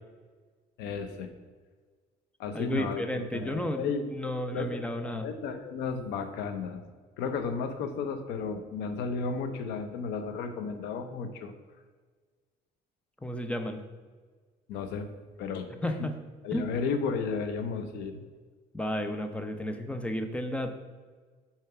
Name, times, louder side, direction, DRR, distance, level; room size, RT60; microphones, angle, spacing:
voice 1, 0.8-1.3 2.4-6.8 7.2-11.5 14.7-15.1 15.4-15.7 16.0-16.1 16.4-18.2, left 5 dB, 85° left, 8 dB, 0.8 m, -33 dB
voice 2, 2.5-5.3 13.2-13.8 15.8-16.1 16.5-16.7 18.7-20.7, equal, 5° left, 7 dB, 0.7 m, -32 dB
5.6 x 4.4 x 5.7 m, 1.5 s
cardioid pair, 110°, 17 cm